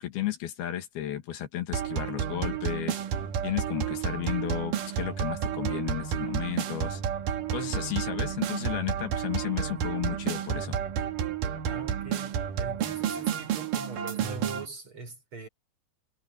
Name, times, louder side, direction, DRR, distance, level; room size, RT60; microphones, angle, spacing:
voice 1, 0.0-3.0 3.4-7.0 7.5-10.8, left 12 dB, 85° left, 3.9 m, -33 dB
sound 1, 1.7-14.7, right 8 dB, 65° right, 3.1 m, -31 dB
voice 2, 11.6-15.5, right 3 dB, 35° right, 5.9 m, -42 dB
omnidirectional pair, 4.3 m